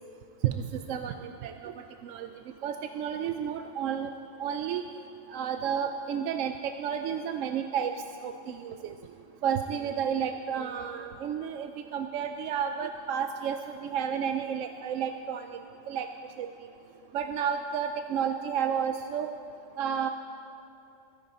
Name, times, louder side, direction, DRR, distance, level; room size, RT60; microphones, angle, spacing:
voice 1, 0.4-2.3 2.6-4.1 4.4-4.8 5.3-7.9 8.2-8.9 9.4-15.6 15.9-16.1 16.4-16.5 17.1-19.3 19.8-20.1, right 8 dB, 70° right, 7 dB, 0.9 m, -31 dB
22.0 x 10.5 x 4.2 m, 2.8 s
omnidirectional pair, 1.4 m